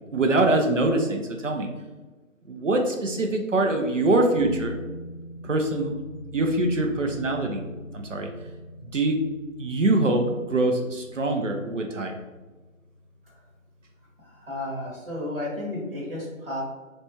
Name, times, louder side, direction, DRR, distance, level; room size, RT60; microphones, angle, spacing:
voice 1, 0.0-1.7 2.5-4.7 5.4-5.9 6.3-7.6 7.9-8.3 8.9-9.2 9.6-12.1, right 2 dB, 65° right, 3 dB, 0.5 m, -24 dB
sound 1, 4.4-13.5 13.8-13.9, left 1 dB, 15° right, 1.4 m, -42 dB
voice 2, 14.2-16.6, left 1 dB, 40° right, -6 dB, 1.2 m, -32 dB
4.1 x 2.2 x 3.0 m, 1.3 s
figure-of-eight pair, 180°, 41 cm